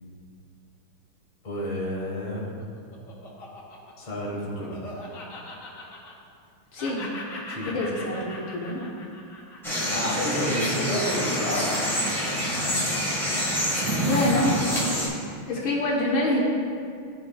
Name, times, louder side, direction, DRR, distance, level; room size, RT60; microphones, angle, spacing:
voice 1, 1.4-2.6 4.0-4.7 7.5-7.7 9.9-11.7, equal, 25° left, -5 dB, 1.2 m, -30 dB
Laughter, 2.4-6.5 6.8-11.2, left 2 dB, 55° left, 1.0 m, -42 dB
voice 2, 6.7-7.0 7.5-8.9 14.0-14.5 15.5-16.4, left 2 dB, 70° left, -4 dB, 1.9 m, -26 dB
sound 1, 9.6-15.1, equal, ahead, 1.1 m, -26 dB
13.0 x 4.4 x 2.3 m, 2.3 s
omnidirectional pair, 2.4 m